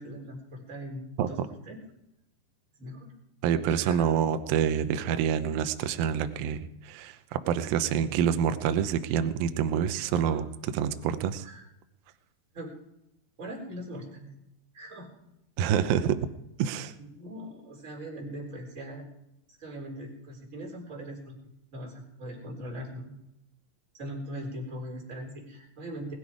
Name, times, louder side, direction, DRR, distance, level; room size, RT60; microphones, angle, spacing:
voice 1, 0.0-1.4 1.7-1.8 2.8-3.1 3.7-4.1 10.2-10.4 11.4-11.6 12.5-12.7 13.4-14.3 14.7-15.3 17.0-19.1 19.6-21.4 21.7-23.1 23.9-26.1, equal, 20° right, -2 dB, 3.8 m, -40 dB
voice 2, 3.4-6.6 6.8-11.5 15.6-16.2 16.6-16.9, right 8 dB, 75° right, 10 dB, 2.3 m, -27 dB
20.5 x 11.0 x 4.9 m, 0.85 s
omnidirectional pair, 4.8 m